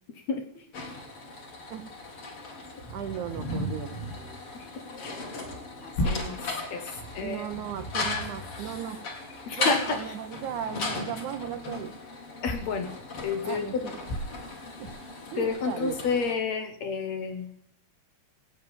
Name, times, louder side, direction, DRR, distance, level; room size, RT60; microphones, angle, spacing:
voice 1, 0.1-0.7 4.5-4.7 5.0-5.2 5.8-7.6 9.5-10.2 12.4-12.9 13.2-13.8 15.4-17.5, left 5 dB, 70° left, 7 dB, 1.7 m, -31 dB
sound 1, 0.7-16.3, left 2 dB, 40° left, 3.3 m, -36 dB
voice 2, 2.9-3.9 7.2-9.0 9.6-11.9 13.4-13.9 14.8-14.9 15.3-16.0, right 10 dB, 85° right, 8 dB, 1.7 m, -36 dB
sound 2, 3.4-15.5, left 1 dB, 90° left, 8.9 m, -40 dB
16.0 x 8.8 x 6.9 m, 0.68 s
omnidirectional pair, 4.8 m